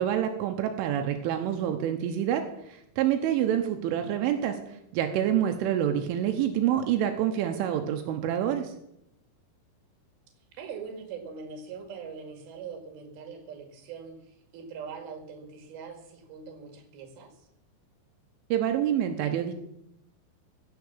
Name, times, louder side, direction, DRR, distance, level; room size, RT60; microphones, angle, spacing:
voice 1, 0.0-8.7 18.5-19.5, right 10 dB, 85° right, 6 dB, 3.3 m, -27 dB
voice 2, 10.6-17.3, right 6 dB, 60° right, 5 dB, 3.5 m, -42 dB
15.5 x 7.1 x 7.2 m, 0.80 s
omnidirectional pair, 5.6 m